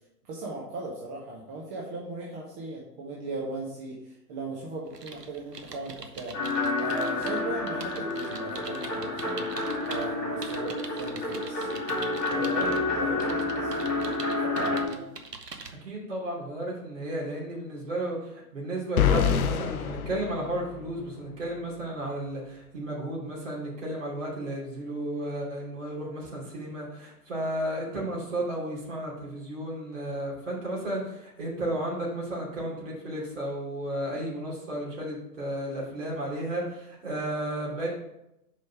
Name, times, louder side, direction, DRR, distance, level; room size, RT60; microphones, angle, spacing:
voice 1, 0.2-6.4 6.8-9.5 9.8-15.0, right 2 dB, 20° right, -4 dB, 1.0 m, -38 dB
sound 1, 4.9-10.1 10.4-12.8 13.2-15.7, right 4 dB, 80° right, 1.0 m, -43 dB
sound 2, 6.3-14.8, left 2 dB, ahead, 0.4 m, -29 dB
voice 2, 15.8-37.9, right 1 dB, 50° right, -3 dB, 3.0 m, -33 dB
sound 3, 19.0-21.1, left 9 dB, 65° left, 0.6 m, -26 dB
5.4 x 5.2 x 5.8 m, 0.86 s
figure-of-eight pair, 120°, 48 cm